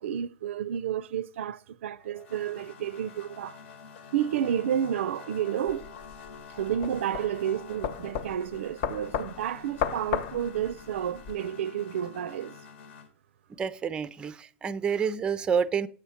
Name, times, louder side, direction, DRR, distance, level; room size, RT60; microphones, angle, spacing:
voice 1, 0.0-3.6 4.1-5.9 6.6-12.6, right 9 dB, 80° right, 0.4 m, -31 dB
sound 1, 2.0-13.1, left 6 dB, 65° left, 1.1 m, -48 dB
sound 2, 5.7-11.3, left 8 dB, 50° left, 0.6 m, -34 dB
voice 2, 13.6-15.9, right 6 dB, 15° right, 0.4 m, -28 dB
8.6 x 5.7 x 4.4 m
supercardioid pair, 145°, 7 cm